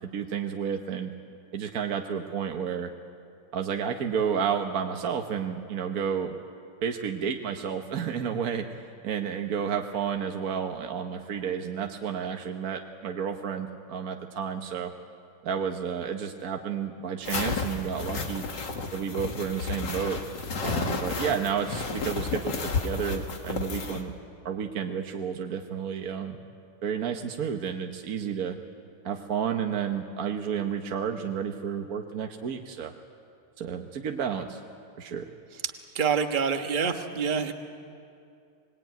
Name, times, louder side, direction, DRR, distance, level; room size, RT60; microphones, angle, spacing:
voice 1, 0.1-1.1 1.5-2.9 3.5-6.4 6.8-14.9 15.4-18.4 18.9-20.2 20.6-24.1 24.4-26.4 26.8-28.6 29.0-32.9 33.6-34.6 35.0-35.3, right 7 dB, 50° right, 4 dB, 1.2 m, -31 dB
sound 1, 17.2-24.0, left 4 dB, 55° left, 2.4 m, -32 dB
voice 2, 35.9-37.5, right 6 dB, 30° right, 5 dB, 1.1 m, -26 dB
24.5 x 21.0 x 9.2 m, 2.5 s
omnidirectional pair, 2.4 m